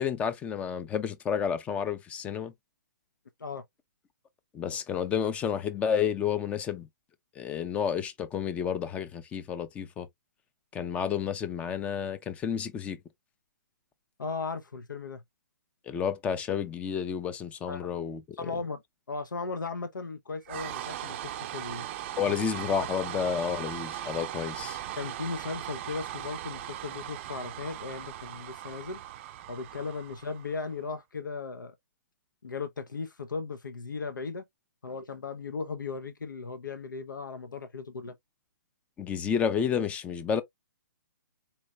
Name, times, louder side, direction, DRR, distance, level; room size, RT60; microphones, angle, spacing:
voice 1, 0.0-2.5 4.5-6.9 7.4-10.1 10.7-13.0 15.9-18.2 22.2-24.8 39.0-40.4, left 7 dB, 15° left, 0.5 m, -30 dB
voice 2, 14.2-15.2 17.7-17.9 18.4-18.8 19.1-21.9 25.0-29.0 29.5-31.7 32.4-34.4 34.8-38.1, left 4 dB, 90° left, 0.8 m, -37 dB
sound 1, 20.5-30.7, right 12 dB, 35° right, 0.5 m, -39 dB
4.4 x 2.4 x 3.1 m
hypercardioid pair, 145°, 10 cm